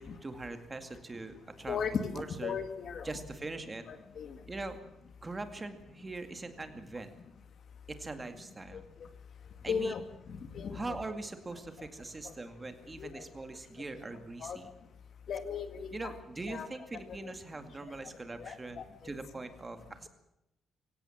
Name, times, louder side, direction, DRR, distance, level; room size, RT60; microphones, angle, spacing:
voice 1, 0.0-1.8 2.1-2.6 3.0-3.8 4.5-4.8 5.2-7.1 7.9-8.8 9.6-9.9 10.7-14.7 15.9-20.1, right 3 dB, 20° right, 8 dB, 2.2 m, -42 dB
voice 2, 1.7-3.1 3.9-4.4 8.7-8.8 9.7-10.0 10.3-10.8 11.8-11.9 12.2-12.3 13.0-13.2 14.4-14.6 15.3-16.1 16.5-16.7 16.9-17.3 18.0-18.1 18.4-18.8, left 6 dB, 50° left, 10 dB, 2.1 m, -37 dB
24.5 x 17.0 x 7.3 m, 0.85 s
cardioid pair, 150°, 0 cm